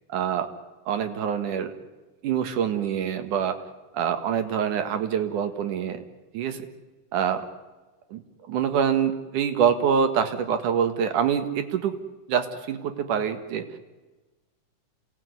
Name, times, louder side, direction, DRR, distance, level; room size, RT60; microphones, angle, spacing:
voice 1, 0.1-0.5 0.9-1.7 2.2-3.6 3.9-6.0 6.3-6.7 7.1-7.4 8.1-12.0 12.3-13.7, right 8 dB, 75° right, 8 dB, 3.2 m, -25 dB
27.0 x 18.0 x 9.6 m, 1.2 s
omnidirectional pair, 3.7 m